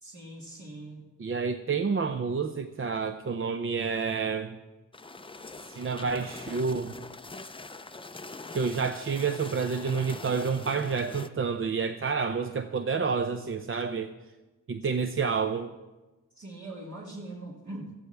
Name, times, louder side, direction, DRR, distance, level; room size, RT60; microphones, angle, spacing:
voice 1, 0.0-1.0 16.4-17.9, right 1 dB, 60° right, -4 dB, 2.2 m, -41 dB
voice 2, 1.2-4.6 5.7-7.0 8.5-14.1 14.7-15.7, right 5 dB, 40° right, 8 dB, 0.6 m, -29 dB
sound 1, 4.9-11.3, left 3 dB, 15° left, 0.5 m, -43 dB
17.5 x 13.5 x 3.4 m, 1.1 s
wide cardioid pair, 95°, 32 cm